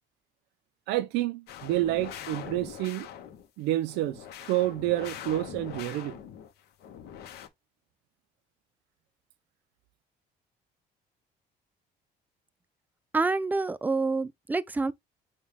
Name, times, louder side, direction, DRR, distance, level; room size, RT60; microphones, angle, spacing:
voice 1, 0.9-3.1 3.6-6.2, right 15 dB, 90° right, 0.5 m, -29 dB
sound 1, 1.5-3.5 3.9-6.5 6.8-7.5, left 9 dB, 70° left, 0.8 m, -42 dB
voice 2, 13.1-14.9, right 3 dB, 10° right, 0.4 m, -27 dB
6.3 x 2.2 x 3.4 m
cardioid pair, 110°, 17 cm